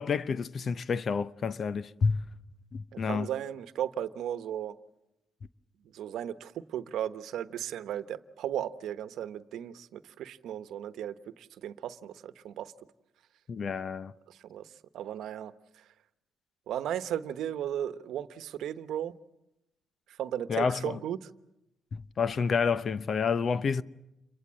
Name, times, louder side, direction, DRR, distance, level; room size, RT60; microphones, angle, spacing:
voice 1, 0.0-2.2 2.7-3.3 13.5-14.1 20.5-21.0 21.9-23.8, left 5 dB, 50° left, 0.8 m, -29 dB
voice 2, 3.0-4.8 5.9-12.7 14.3-14.7 14.9-15.5 16.7-19.1 20.2-21.3, right 10 dB, 80° right, 1.1 m, -35 dB
28.5 x 23.0 x 7.6 m
cardioid pair, 90°, 0 cm